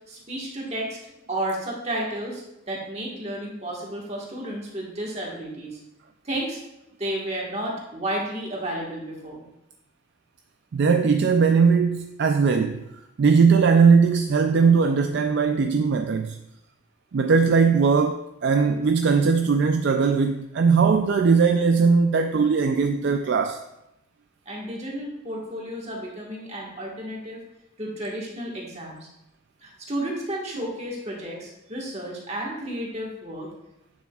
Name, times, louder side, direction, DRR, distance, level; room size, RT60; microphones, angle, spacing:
voice 1, 0.1-1.0 1.3-5.8 6.2-6.6 7.0-9.4 24.4-27.4 27.8-29.1 29.6-33.5, right 1 dB, 30° right, -2 dB, 1.5 m, -32 dB
voice 2, 10.7-12.9 13.2-16.4 17.1-23.6, right 5 dB, 55° right, 6 dB, 0.3 m, -19 dB
8.6 x 6.9 x 2.4 m, 0.87 s
head